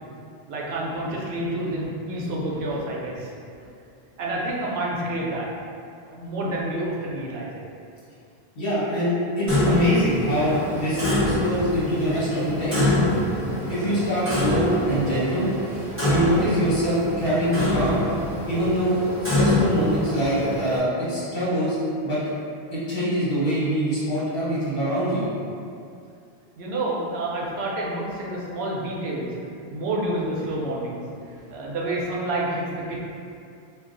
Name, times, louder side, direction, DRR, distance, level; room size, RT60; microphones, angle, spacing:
voice 1, 0.5-3.3 4.2-5.5 6.0-7.6 26.6-29.3 29.7-31.0 31.3-33.0, right 1 dB, 80° right, -4 dB, 0.9 m, -28 dB
voice 2, 8.6-12.8 13.7-15.5 16.0-18.0 18.5-21.8 22.0-22.2 22.7-25.3, equal, 60° left, -9 dB, 1.2 m, -24 dB
Clock, 9.5-20.8, left 1 dB, 15° right, 0.9 m, -25 dB
2.6 x 2.3 x 3.7 m, 2.5 s
omnidirectional pair, 1.1 m